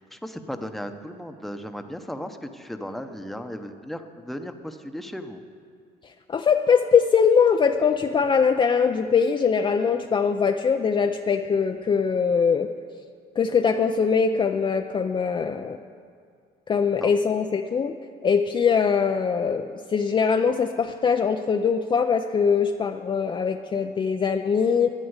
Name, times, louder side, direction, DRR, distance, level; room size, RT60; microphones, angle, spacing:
voice 1, 0.0-5.4 17.0-17.1, equal, ahead, 6 dB, 0.9 m, -36 dB
voice 2, 6.3-12.7 13.4-15.8 16.7-17.9 18.2-24.9, left 6 dB, 30° left, 5 dB, 0.5 m, -22 dB
11.0 x 10.0 x 8.0 m, 2.3 s
cardioid pair, 110°, 17 cm